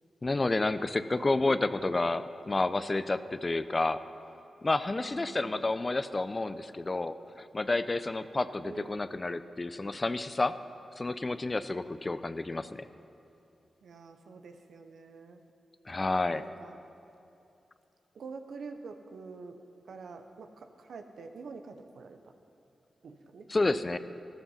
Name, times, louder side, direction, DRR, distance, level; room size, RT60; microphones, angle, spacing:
voice 1, 0.2-4.0 4.6-10.6 11.0-12.9 15.9-16.4 23.5-24.0, left 2 dB, 35° left, 13 dB, 0.6 m, -30 dB
voice 2, 4.9-5.7 8.6-9.0 13.8-15.4 16.3-16.8 18.1-19.6 19.8-22.3 23.0-23.5, right 4 dB, 80° right, 6 dB, 1.0 m, -47 dB
13.5 x 13.0 x 5.7 m, 2.8 s
supercardioid pair, 40°, 0 cm